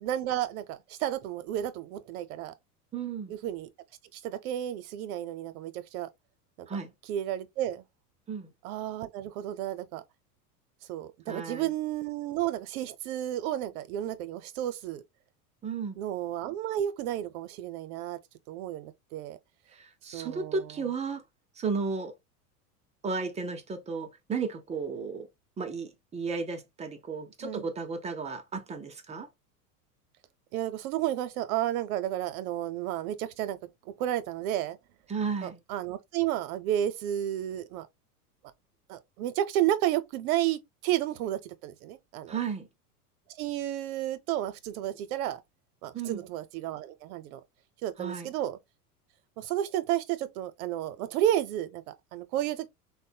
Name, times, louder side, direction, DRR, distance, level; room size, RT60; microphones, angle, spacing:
voice 1, 0.0-2.5 3.3-3.7 4.1-6.1 6.6-6.7 7.1-7.8 8.6-10.0 10.9-15.0 16.0-18.2 18.5-19.4 20.1-20.7 27.4-27.6 30.5-33.6 33.9-34.8 35.4-37.9 38.9-42.4 43.3-45.4 45.8-47.4 47.8-48.6 49.4-52.7, right 12 dB, 65° right, 0.7 m, -32 dB
voice 2, 2.9-3.3 6.7-6.9 8.3-8.5 11.3-11.7 15.6-16.0 19.7-21.2 21.6-22.1 23.0-25.3 25.6-29.3 35.1-35.6 42.3-42.7 45.9-46.2 48.0-48.3, right 5 dB, 15° right, 0.4 m, -34 dB
3.6 x 2.2 x 2.7 m
hypercardioid pair, 95°, 46 cm